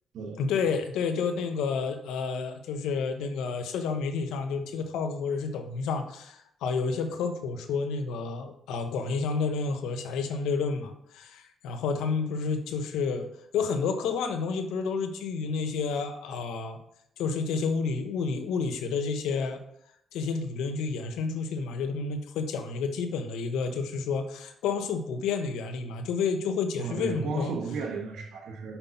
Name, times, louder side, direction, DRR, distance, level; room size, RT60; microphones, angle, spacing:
voice 1, 0.4-13.3 13.5-16.8 17.2-19.6 20.1-27.5, left 5 dB, 90° left, 7 dB, 1.0 m, -30 dB
voice 2, 26.8-28.8, right 4 dB, 75° right, 1 dB, 1.4 m, -34 dB
5.7 x 5.4 x 5.7 m, 0.74 s
cardioid pair, 90°, 0 cm